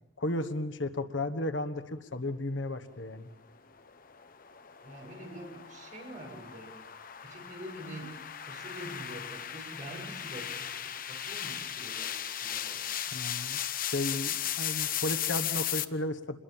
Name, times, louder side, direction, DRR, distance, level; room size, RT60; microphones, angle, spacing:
voice 1, 0.2-3.3 13.1-16.4, left 1 dB, 70° left, 10 dB, 1.4 m, -34 dB
sound 1, 3.8-15.8, left 10 dB, 45° left, 0.9 m, -36 dB
voice 2, 4.8-6.7 7.2-8.2 8.4-10.8 11.1-12.9, right 1 dB, 40° right, 0 dB, 7.0 m, -45 dB
27.5 x 21.5 x 7.4 m, 0.92 s
head